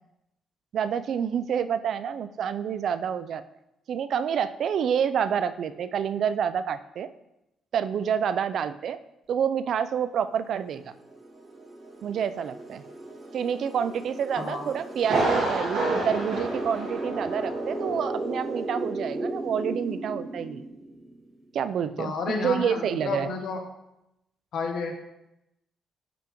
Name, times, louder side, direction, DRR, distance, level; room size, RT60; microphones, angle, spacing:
voice 1, 0.7-3.4 3.9-7.1 7.7-9.0 9.3-10.9 12.0-12.8 13.3-20.6 21.5-23.3, right 8 dB, 65° right, 13 dB, 0.3 m, -28 dB
sound 1, 10.6-21.2, right 2 dB, 25° right, 1.5 m, -36 dB
Thunder, 15.0-17.6 17.9-18.0 18.5-18.6, right 2 dB, 85° right, 2.0 m, -28 dB
voice 2, 22.0-23.7 24.5-24.9, left 4 dB, 70° left, 3 dB, 1.2 m, -31 dB
10.0 x 3.6 x 2.9 m, 0.86 s
cardioid pair, 90°, 0 cm